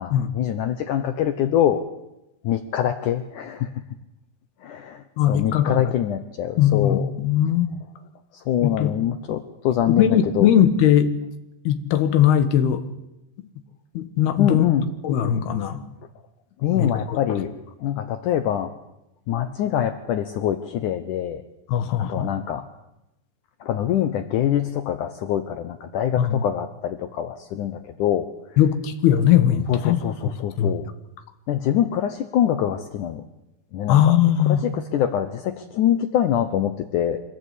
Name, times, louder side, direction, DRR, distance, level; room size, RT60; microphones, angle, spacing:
voice 1, 0.0-1.8 2.4-3.7 4.6-5.0 5.3-7.1 8.5-10.5 14.4-14.9 16.6-17.5 17.8-18.7 19.3-21.4 22.0-22.6 23.6-28.3 29.7-30.8 31.5-33.2 33.7-34.1 34.5-37.2, left 10 dB, 85° left, 9 dB, 1.7 m, -24 dB
voice 2, 5.2-5.9 6.6-7.7 8.6-8.9 9.9-11.1 11.6-12.8 13.9-14.7 15.0-15.8 16.7-17.4 21.7-22.3 26.2-26.4 28.6-30.0 30.6-30.7 33.9-34.6, left 10 dB, 70° left, 9 dB, 3.3 m, -19 dB
25.5 x 18.5 x 8.3 m, 0.91 s
omnidirectional pair, 5.0 m